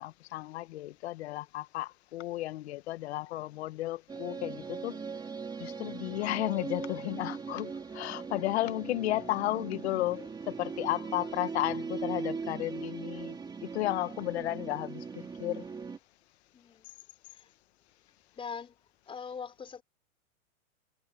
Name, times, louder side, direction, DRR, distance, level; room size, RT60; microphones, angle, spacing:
voice 1, 0.0-5.0 5.6-13.4 13.7-15.6, left 16 dB, 50° left, 1.3 m, -33 dB
sound 1, 4.1-16.0, right 5 dB, 10° right, 2.5 m, -39 dB
voice 2, 16.5-16.9 17.3-17.5 18.3-18.8 19.1-19.8, left 6 dB, 10° left, 5.2 m, -42 dB
hypercardioid pair, 145°, 43 cm